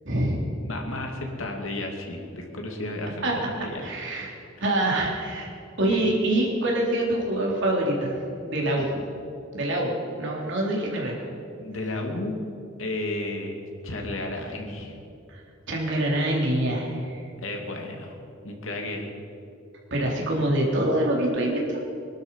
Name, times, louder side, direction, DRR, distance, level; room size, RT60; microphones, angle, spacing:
voice 1, 0.0-0.4 3.2-3.3 3.8-4.3 4.6-5.5 5.8-8.9 9.5-11.2 15.3-15.4 15.7-17.2 19.9-21.8, right 1 dB, 65° right, -2 dB, 3.5 m, -25 dB
voice 2, 0.6-3.8 5.9-6.0 8.9-9.0 11.6-12.4 12.8-15.0 17.4-18.2 18.4-19.1, left 2 dB, 80° left, 2 dB, 2.5 m, -33 dB
21.5 x 12.0 x 5.6 m, 2.6 s
head